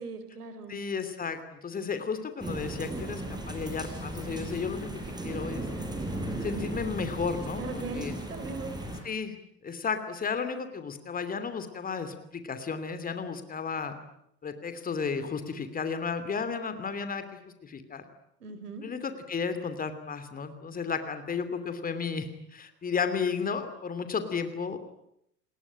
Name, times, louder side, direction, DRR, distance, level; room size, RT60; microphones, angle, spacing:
voice 1, 0.0-0.8 7.6-8.8 18.4-18.8, right 4 dB, 70° right, 10 dB, 4.5 m, -39 dB
voice 2, 0.7-5.7 6.4-8.2 9.0-9.3 9.6-13.9 14.4-17.2 17.6-18.0 18.8-24.8, left 5 dB, 15° left, 9 dB, 2.8 m, -33 dB
sound 1, 2.4-9.0, right 1 dB, 10° right, 5.7 m, -36 dB
29.0 x 20.5 x 8.9 m, 0.74 s
figure-of-eight pair, 90°, 48 cm